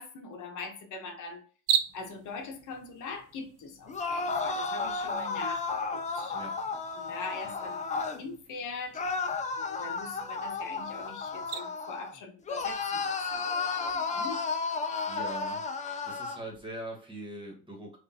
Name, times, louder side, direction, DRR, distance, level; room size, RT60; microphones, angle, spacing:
voice 1, 0.0-1.4 1.9-6.4 7.0-9.0 9.6-14.4, left 4 dB, 65° left, 4 dB, 0.9 m, -42 dB
sound 1, 1.7-11.6, right 9 dB, 50° right, 0.5 m, -39 dB
sound 2, 3.9-8.2 8.9-12.1 12.5-16.4, left 4 dB, 25° left, 0.4 m, -33 dB
voice 2, 15.0-15.6 16.0-18.0, right 1 dB, 15° right, 0 dB, 1.4 m, -42 dB
5.2 x 2.5 x 2.7 m, 0.42 s
cardioid pair, 145°, 32 cm